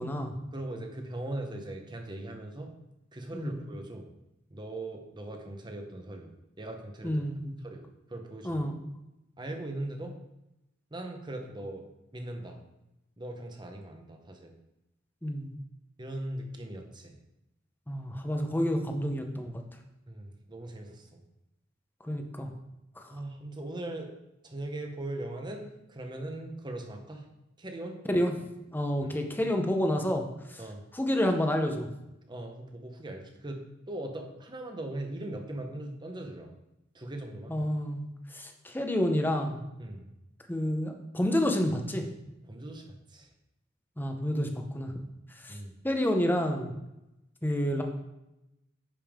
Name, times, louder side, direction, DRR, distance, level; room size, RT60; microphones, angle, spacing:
voice 1, 0.0-0.3 3.3-3.5 7.0-7.5 8.4-8.7 15.2-15.5 17.9-19.5 22.0-22.5 28.1-28.3 28.7-30.2 30.9-31.9 37.5-38.0 38.3-39.6 40.5-42.1 44.0-44.9 45.4-45.6 45.8-46.7 47.4-47.8, equal, 10° left, 4 dB, 0.8 m, -29 dB
voice 2, 0.5-2.7 3.1-4.1 4.5-6.3 6.6-7.2 7.6-8.6 9.4-10.1 10.9-11.9 12.1-12.6 13.2-14.5 16.0-17.1 20.1-21.2 23.1-24.1 24.4-27.3 27.6-28.0 29.0-29.1 30.6-30.8 32.3-36.5 36.9-37.7 39.8-40.0 42.5-43.3 45.5-45.7, right 1 dB, 20° right, 4 dB, 1.0 m, -40 dB
10.0 x 5.4 x 3.6 m, 0.91 s
head